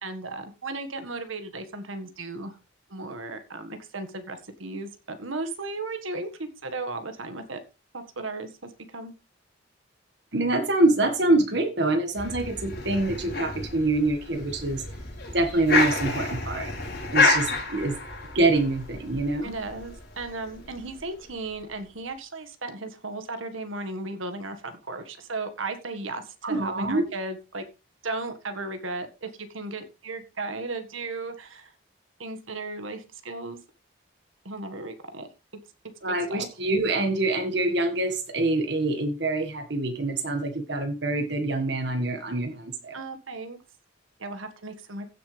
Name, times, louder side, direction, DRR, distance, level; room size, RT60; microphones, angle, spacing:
voice 1, 0.0-2.6 2.9-7.6 7.9-9.1 19.4-27.7 28.0-31.7 32.2-33.6 34.5-35.3 36.1-36.5 42.9-43.6 44.2-45.1, right 3 dB, 85° right, 8 dB, 1.7 m, -35 dB
voice 2, 10.3-14.8 15.3-16.7 17.1-18.0 18.4-19.6 26.4-27.1 36.0-43.0, right 2 dB, 60° right, 5 dB, 1.7 m, -25 dB
sound 1, 12.2-21.3, left 3 dB, 50° left, 5.5 m, -29 dB
16.0 x 7.0 x 3.3 m, 0.28 s
head